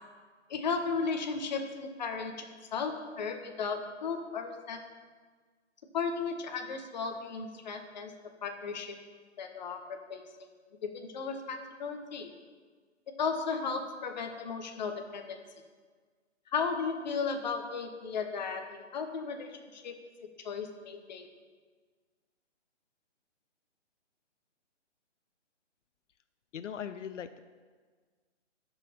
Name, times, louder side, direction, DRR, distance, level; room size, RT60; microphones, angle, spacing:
voice 1, 0.5-2.4 2.7-4.8 5.9-8.1 8.4-8.9 9.4-10.2 10.8-12.3 13.2-15.4 16.5-19.9 20.4-21.3, left 5 dB, 35° left, 5 dB, 0.9 m, -35 dB
voice 2, 26.5-27.4, left 8 dB, 80° left, 11 dB, 0.6 m, -39 dB
12.5 x 5.7 x 4.2 m, 1.5 s
hypercardioid pair, 165°, 36 cm